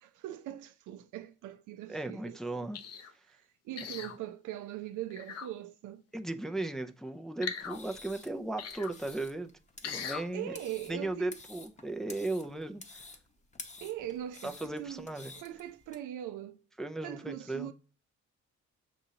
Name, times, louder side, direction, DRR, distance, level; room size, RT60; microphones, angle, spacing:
voice 1, 0.0-2.7 3.3-6.0 10.3-11.3 13.8-16.6 17.0-17.7, right 12 dB, 80° right, 0.5 m, -41 dB
voice 2, 1.9-2.8 6.1-9.5 9.8-10.6 10.9-13.0 14.4-15.3 16.8-17.7, right 2 dB, ahead, 0.4 m, -36 dB
sound 1, 2.7-3.1 3.8-4.2 5.1-5.5 7.4-7.8 8.6-8.9 9.8-10.2 10.8-10.9, left 7 dB, 55° left, 0.6 m, -39 dB
sound 2, 7.6-16.0, left 3 dB, 25° left, 0.8 m, -51 dB
6.2 x 2.8 x 2.7 m
cardioid pair, 90°, 30 cm